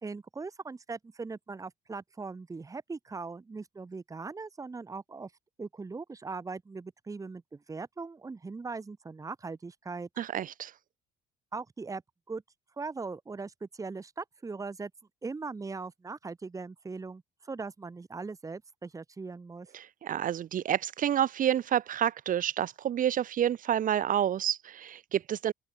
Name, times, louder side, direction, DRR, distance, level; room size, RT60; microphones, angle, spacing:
voice 1, 0.0-5.3 5.6-10.1 11.5-12.0 12.3-12.4 12.8-14.9 15.2-19.7, right 4 dB, 20° right, 1.6 m, -40 dB
voice 2, 10.2-10.7 19.7-25.5, right 10 dB, 55° right, 1.8 m, -29 dB
open air
cardioid pair, 110°, 17 cm